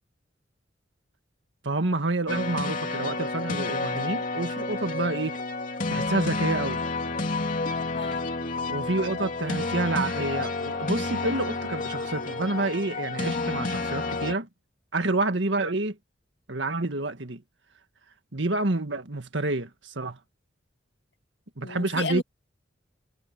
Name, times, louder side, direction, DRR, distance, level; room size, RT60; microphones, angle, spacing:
voice 1, 1.6-5.4 5.9-6.8 8.7-14.5 14.9-16.0 16.5-17.4 18.3-20.2 21.6-22.2, right 2 dB, 75° right, 1.9 m, -28 dB
sound 1, 2.3-14.4, left 3 dB, 45° left, 2.9 m, -30 dB
voice 2, 7.9-8.3 21.6-22.2, left 2 dB, 65° left, 2.0 m, -33 dB
head